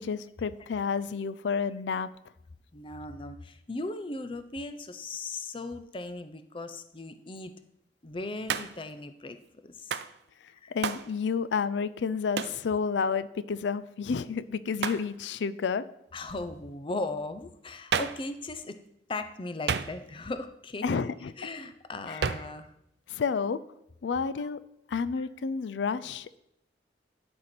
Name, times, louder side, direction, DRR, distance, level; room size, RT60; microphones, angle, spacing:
voice 1, 0.0-2.1 10.7-15.8 20.8-21.3 22.1-22.3 23.1-23.6 24.0-24.6 24.9-26.4, left 5 dB, 85° left, 15 dB, 0.4 m, -30 dB
voice 2, 2.7-7.5 8.0-9.4 9.6-10.0 10.6-10.7 16.1-18.8 19.1-21.0 21.4-22.7 24.4-24.5 25.2-25.3, left 2 dB, 30° left, 10 dB, 0.6 m, -38 dB
Hands, 8.5-8.9 9.9-10.1 10.8-11.1 12.4-12.6 14.8-15.1 17.9-18.3 19.7-20.2 22.2-22.6, right 6 dB, 70° right, 0.5 m, -31 dB
11.5 x 4.4 x 6.0 m, 0.80 s
head